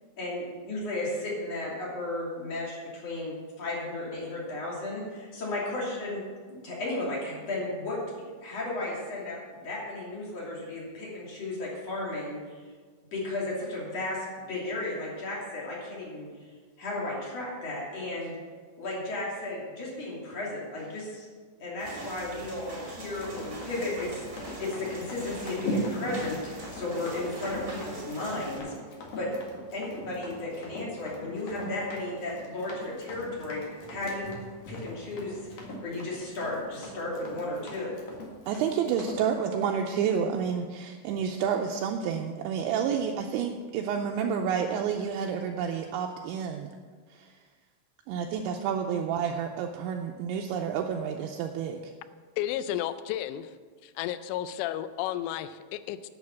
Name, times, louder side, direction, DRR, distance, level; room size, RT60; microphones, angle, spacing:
voice 1, 0.2-6.2 6.5-8.0 8.4-12.6 13.1-16.3 16.8-18.3 18.8-21.3 21.6-26.4 26.7-28.7 29.2-29.3 29.7-33.6 33.9-34.4 34.7-38.0, left 2 dB, 40° left, -5 dB, 3.3 m, -34 dB
sound 1, 21.8-28.6, right 2 dB, 35° right, 1.5 m, -43 dB
Run, 23.1-39.2, equal, 55° left, 2.1 m, -40 dB
voice 2, 38.5-46.7 47.1-47.3 48.1-51.9, right 7 dB, 85° right, 2 dB, 2.7 m, -29 dB
voice 3, 52.4-53.5 53.8-56.1, left 12 dB, 85° left, 12 dB, 3.0 m, -32 dB
10.5 x 6.7 x 7.1 m, 1.5 s
omnidirectional pair, 5.8 m